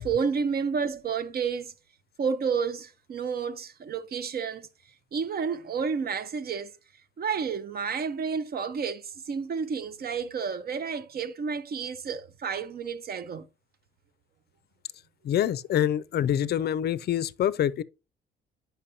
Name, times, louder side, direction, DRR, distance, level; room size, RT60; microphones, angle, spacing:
voice 1, 0.0-1.7 2.2-4.7 5.1-6.7 7.2-13.5, right 6 dB, 50° right, 0.7 m, -30 dB
voice 2, 15.3-17.8, left 10 dB, 55° left, 0.4 m, -26 dB
8.4 x 5.8 x 2.7 m
cardioid pair, 90°, 20 cm